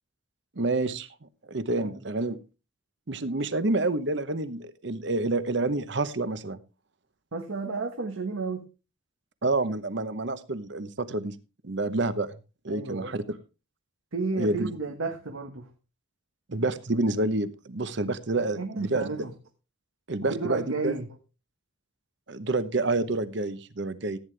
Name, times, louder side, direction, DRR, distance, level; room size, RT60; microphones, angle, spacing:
voice 1, 0.6-2.4 3.1-6.6 9.4-11.4 11.6-12.3 12.6-13.2 14.4-14.7 16.5-19.1 20.1-20.9 22.3-24.2, right 2 dB, 60° right, 0.9 m, -28 dB
voice 2, 7.3-8.7 12.7-13.2 14.1-15.7 18.4-19.3 20.3-21.1, right 3 dB, 90° right, 1.4 m, -32 dB
15.0 x 9.3 x 3.3 m
head